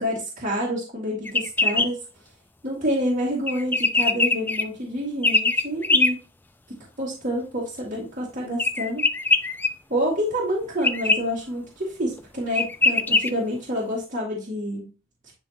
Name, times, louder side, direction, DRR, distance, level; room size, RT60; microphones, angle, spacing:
voice 1, 0.0-2.0 2.6-6.2 7.0-9.0 9.9-14.9, equal, 40° right, -5 dB, 2.2 m, -28 dB
sound 1, 1.3-1.9 3.5-4.6 5.2-6.1 8.6-9.7 10.8-11.2 12.2-12.3 12.6-13.3, left 2 dB, 10° left, 0.3 m, -21 dB
10.0 x 3.6 x 3.0 m, 0.32 s
head